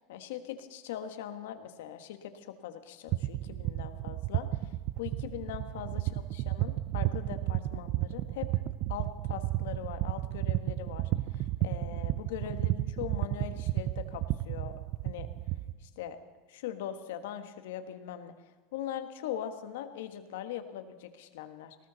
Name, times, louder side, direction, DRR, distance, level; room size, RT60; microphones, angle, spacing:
voice 1, 0.1-4.5 5.0-8.6 8.9-14.7 15.0-15.3 15.8-16.2 16.5-18.3 18.7-21.8, left 10 dB, 85° left, 9 dB, 1.4 m, -41 dB
sound 1, 3.1-15.7, right 15 dB, 40° right, 0.5 m, -32 dB
19.5 x 18.0 x 4.1 m, 1.3 s
supercardioid pair, 170°, 0 cm